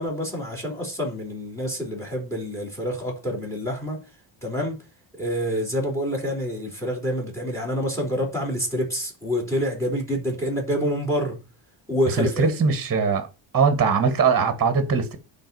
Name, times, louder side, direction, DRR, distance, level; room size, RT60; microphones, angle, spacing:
voice 1, 0.0-4.0 4.4-4.8 5.1-11.4 11.9-12.5, equal, 5° left, 3.4 m, -27 dB
voice 2, 12.1-13.3 13.5-15.2, right 5 dB, 30° right, 1.7 m, -21 dB
10.5 x 4.1 x 6.9 m
cardioid pair, 145°, 46 cm